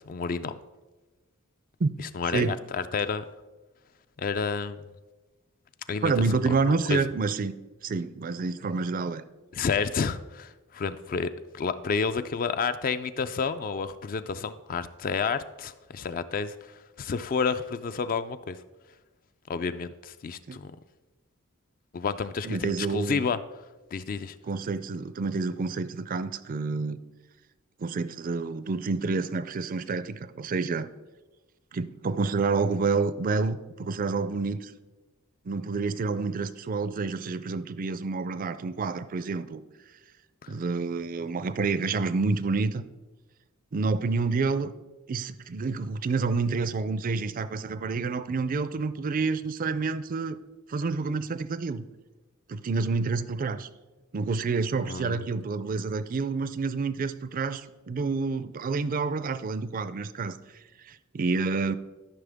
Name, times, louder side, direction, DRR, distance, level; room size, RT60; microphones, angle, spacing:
voice 1, 0.1-0.6 2.1-3.2 4.2-4.8 5.9-6.1 6.4-6.6 6.9-7.0 9.5-11.3 11.6-16.5 17.0-18.6 19.5-20.7 21.9-23.4 23.9-24.3 40.4-40.5 54.9-55.2, left 5 dB, 40° left, 12 dB, 0.4 m, -30 dB
voice 2, 6.0-7.5 7.8-9.2 20.5-20.6 22.4-23.2 24.4-27.0 27.8-30.9 31.7-34.7 35.5-39.6 40.5-42.8 43.7-44.7 45.1-50.4 50.7-51.8 52.5-53.7 54.1-60.4 60.8-61.8, right 4 dB, 40° right, 14 dB, 0.4 m, -28 dB
13.5 x 5.8 x 3.5 m, 1.2 s
head